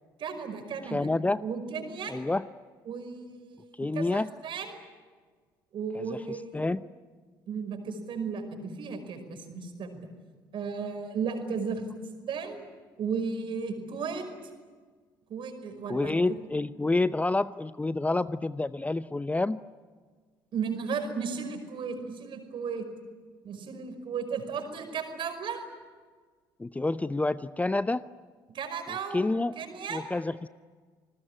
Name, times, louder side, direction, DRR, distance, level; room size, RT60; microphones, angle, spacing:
voice 1, 0.2-1.1 1.4-2.2 2.9-4.8 5.7-6.7 7.5-10.0 10.5-11.8 12.3-12.6 13.0-14.3 15.3-16.1 20.5-22.9 23.4-25.6 28.5-30.0, right 5 dB, 50° right, 7 dB, 5.3 m, -35 dB
voice 2, 0.8-1.4 2.1-2.5 3.8-4.3 5.9-6.8 15.9-19.6 26.6-28.0 29.1-29.5 29.9-30.5, left 2 dB, 15° left, 15 dB, 0.7 m, -28 dB
28.5 x 20.0 x 10.0 m, 1.5 s
hypercardioid pair, 55°, 11 cm